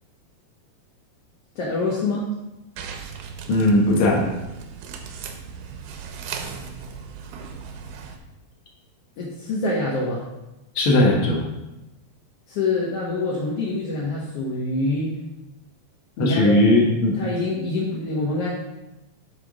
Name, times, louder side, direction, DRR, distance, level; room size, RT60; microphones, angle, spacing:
voice 1, 1.5-2.2 9.2-10.2 12.5-15.1 16.2-16.8 17.1-18.5, left 2 dB, 70° left, -5 dB, 1.4 m, -25 dB
sound 1, 2.8-8.2, right 6 dB, 75° right, 2.0 m, -37 dB
voice 2, 3.5-4.3 10.7-11.4 16.2-17.1, left 1 dB, 55° left, -1 dB, 1.6 m, -18 dB
9.7 x 3.6 x 4.9 m, 0.97 s
omnidirectional pair, 4.2 m